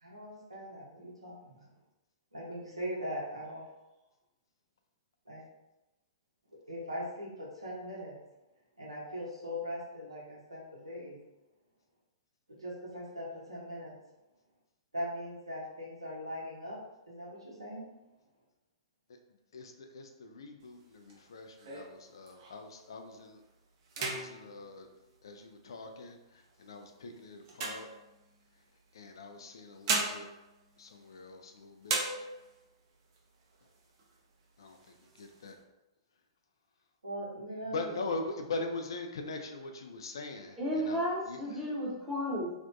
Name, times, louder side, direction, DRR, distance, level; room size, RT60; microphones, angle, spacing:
voice 1, 0.0-1.6 2.3-3.6 5.3-5.4 6.7-8.2 8.8-11.2 12.6-13.9 14.9-16.8 17.1-17.9 37.0-37.9, equal, 85° right, -5 dB, 0.9 m, -40 dB
voice 2, 19.5-23.4 24.0-24.9 25.2-27.9 28.9-30.3 30.8-32.0 34.6-34.8 35.2-35.6 37.7-41.6, left 3 dB, 65° left, 5 dB, 0.3 m, -42 dB
sound 1, 20.6-22.8 23.3-23.5 23.8-25.8 26.4-28.6 29.5-31.5 31.8-32.7 33.1-33.2 33.5-34.2 34.6-35.5, right 3 dB, 40° right, 0.6 m, -38 dB
voice 3, 40.6-42.5, equal, 5° right, -6 dB, 0.8 m, -33 dB
2.5 x 2.1 x 2.5 m, 0.99 s
figure-of-eight pair, 110°, 3 cm